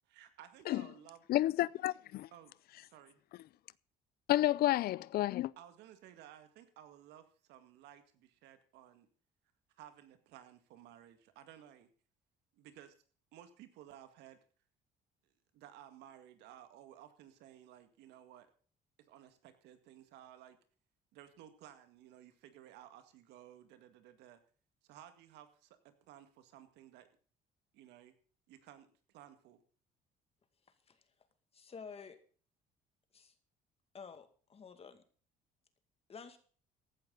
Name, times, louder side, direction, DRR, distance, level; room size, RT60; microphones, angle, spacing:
voice 1, 0.1-1.2 2.3-2.5 2.9-3.2 5.6-9.1 9.8-11.9 12.5-13.0 13.3-14.4 15.2-18.5 19.0-20.6 21.1-24.4 24.8-27.1 27.7-28.2 28.5-29.6, right 11 dB, 85° right, 2.0 m, -56 dB
voice 2, 1.3-2.3 4.3-5.5, left 14 dB, 65° left, 0.5 m, -30 dB
voice 3, 30.7-31.0 31.5-32.2 33.1-33.3 33.9-35.0 36.1-36.4, left 5 dB, 35° left, 2.2 m, -51 dB
15.5 x 11.5 x 4.0 m
cardioid pair, 110°, 17 cm